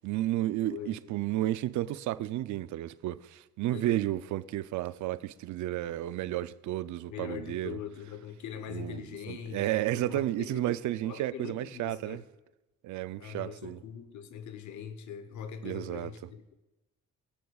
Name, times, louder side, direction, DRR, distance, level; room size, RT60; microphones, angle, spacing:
voice 1, 0.0-7.8 8.7-12.2 12.8-13.8 15.6-16.1, right 14 dB, 75° right, 0.5 m, -32 dB
voice 2, 0.6-1.0 3.7-4.0 7.1-10.7 11.0-12.3 13.2-16.6, left 8 dB, 70° left, 1.0 m, -42 dB
24.5 x 8.4 x 2.4 m
cardioid pair, 90°, 30 cm